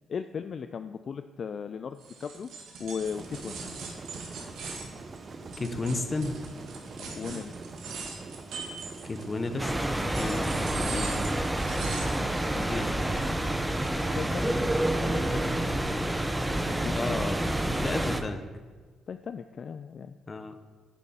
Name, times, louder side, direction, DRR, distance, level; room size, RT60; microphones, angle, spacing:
voice 1, 0.1-2.5 2.8-3.6 7.2-7.5 12.4-12.6 13.3-13.6 14.1-14.5 15.0-15.6 16.5-17.2 19.1-20.2, left 6 dB, 50° left, 10 dB, 0.3 m, -37 dB
sound 1, 2.0-9.4 9.9-12.3, right 4 dB, 75° right, 1.8 m, -40 dB
sound 2, 3.1-13.3, right 3 dB, 40° right, 0.8 m, -44 dB
voice 2, 5.6-6.4 9.0-9.7 10.2-11.2 12.5-13.4 13.8-13.9 16.9-18.4 20.3-20.5, left 3 dB, 30° left, 9 dB, 0.9 m, -33 dB
sound 3, 9.6-18.2, right 1 dB, 10° right, 0.7 m, -28 dB
10.0 x 7.0 x 4.3 m, 1.5 s
cardioid pair, 90°, 0 cm